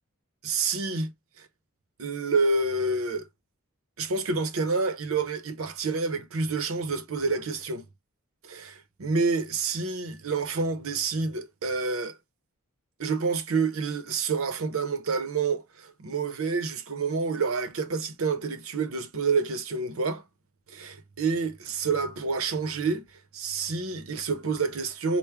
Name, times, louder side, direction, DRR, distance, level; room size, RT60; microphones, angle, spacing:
voice 1, 0.4-1.1 1.4-1.5 2.0-3.2 4.0-7.8 8.4-12.2 13.0-20.2 20.7-23.0 23.3-25.2, right 4 dB, 70° right, 0.6 m, -28 dB
4.4 x 2.1 x 3.4 m
head